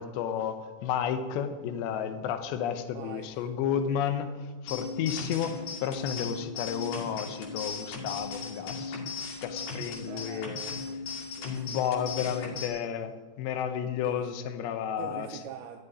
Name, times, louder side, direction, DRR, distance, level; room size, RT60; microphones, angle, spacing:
voice 1, 0.0-9.0 9.4-10.6 11.4-15.4, left 8 dB, 75° left, 9 dB, 3.1 m, -32 dB
voice 2, 2.9-4.0 10.1-11.8 14.1-14.3 15.0-15.8, right 9 dB, 80° right, 3 dB, 2.3 m, -45 dB
sound 1, 4.7-12.7, left 4 dB, 45° left, 3.3 m, -37 dB
13.5 x 7.4 x 9.8 m, 1.3 s
omnidirectional pair, 5.2 m